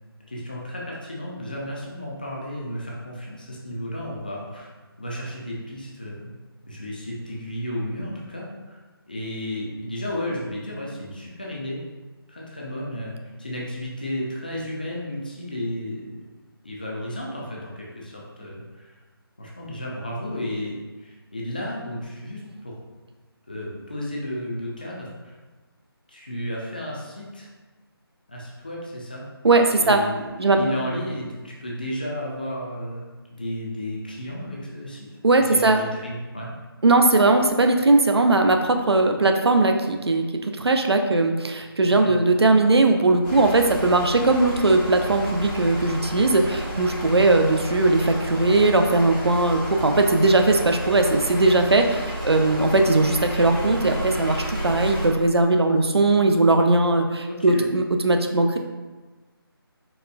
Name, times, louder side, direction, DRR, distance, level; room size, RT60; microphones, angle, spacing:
voice 1, 0.3-4.7 5.0-6.3 6.6-8.8 9.1-11.8 12.3-16.2 16.6-18.9 19.4-22.7 23.5-25.4 26.1-27.5 28.3-29.2 29.8-33.0 33.3-35.1 35.5-36.5 42.0-42.1 57.3-57.6, left 1 dB, 20° left, -4 dB, 0.3 m, -33 dB
voice 2, 29.4-30.0 30.4-30.6 35.2-35.8 36.8-58.6, right 2 dB, 85° right, 4 dB, 0.4 m, -19 dB
sound 1, 43.2-55.1, right 1 dB, 55° right, 1.1 m, -31 dB
4.2 x 2.1 x 2.2 m, 1.3 s
figure-of-eight pair, 155°, 13 cm